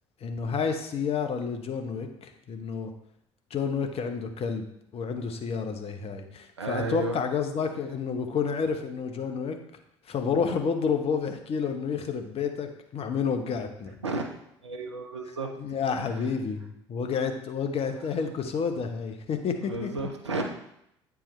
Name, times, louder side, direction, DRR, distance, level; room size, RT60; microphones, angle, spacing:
voice 1, 0.2-2.9 3.5-4.6 4.9-9.6 10.1-13.9 15.6-19.9, left 6 dB, 45° left, 6 dB, 0.9 m, -30 dB
voice 2, 6.6-7.2 14.0-14.3 14.6-15.5 16.0-16.2 19.6-20.4, right 3 dB, 90° right, 4 dB, 0.7 m, -32 dB
8.7 x 4.7 x 3.2 m, 0.77 s
figure-of-eight pair, 55°, 14 cm